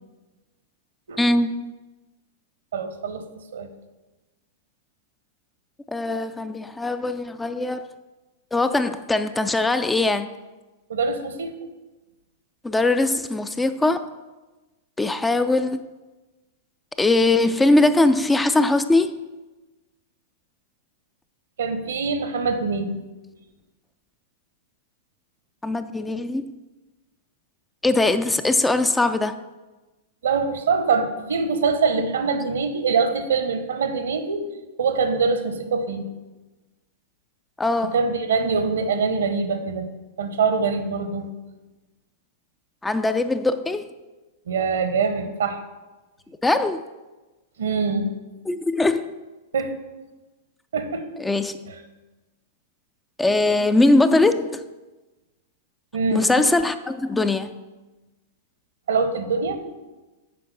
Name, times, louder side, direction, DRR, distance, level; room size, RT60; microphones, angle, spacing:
voice 1, 1.2-1.5 5.9-7.9 8.5-10.3 12.6-14.1 15.0-15.8 17.0-19.2 25.6-26.5 27.8-29.3 37.6-38.0 42.8-43.9 46.4-46.8 48.5-49.1 51.2-51.6 53.2-54.6 56.1-57.5, left 2 dB, 10° left, 10 dB, 0.4 m, -21 dB
voice 2, 2.7-3.2 3.5-3.7 10.9-11.5 21.6-23.0 30.2-34.5 34.8-36.0 37.9-39.9 40.2-41.3 44.5-45.6 47.6-48.1 49.5-49.7 50.7-51.0 51.7-51.8 55.9-56.3 58.9-59.6, right 5 dB, 65° right, 9 dB, 0.9 m, -24 dB
8.3 x 5.2 x 5.9 m, 1.1 s
figure-of-eight pair, 100°, 0 cm